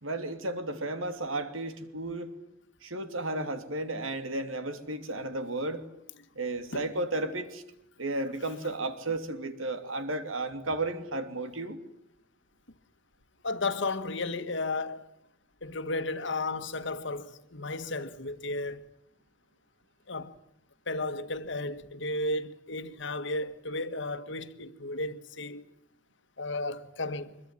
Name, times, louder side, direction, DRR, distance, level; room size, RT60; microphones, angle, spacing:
voice 1, 0.0-2.3 2.8-5.8 6.4-7.6 8.0-11.8, right 2 dB, 85° right, 2.9 m, -33 dB
voice 2, 13.4-15.0 15.6-18.9 20.1-20.4 20.9-25.6 26.4-27.4, left 2 dB, 65° left, 1.6 m, -34 dB
24.5 x 22.5 x 9.8 m
head